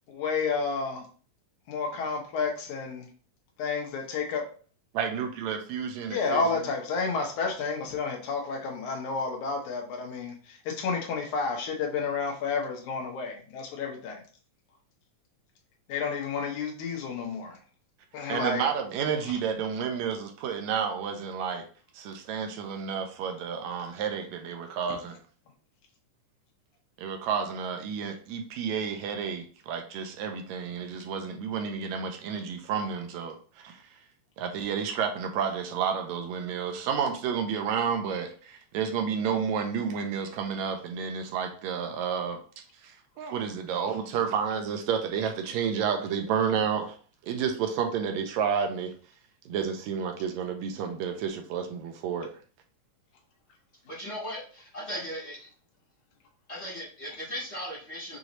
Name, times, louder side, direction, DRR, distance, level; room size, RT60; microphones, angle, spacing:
voice 1, 0.1-1.0 1.7-3.1 3.6-4.4 6.1-14.2 15.9-17.6 18.1-18.6, left 4 dB, 85° left, 1 dB, 2.4 m, -31 dB
voice 2, 4.9-6.6 18.3-21.7 21.9-25.2 27.0-33.8 34.4-42.4 42.8-47.0 47.2-48.9 49.5-52.4, right 7 dB, 80° right, 5 dB, 1.9 m, -30 dB
voice 3, 53.8-55.5 56.5-58.2, equal, 40° left, -6 dB, 0.9 m, -37 dB
6.2 x 2.7 x 3.0 m, 0.41 s
omnidirectional pair, 3.3 m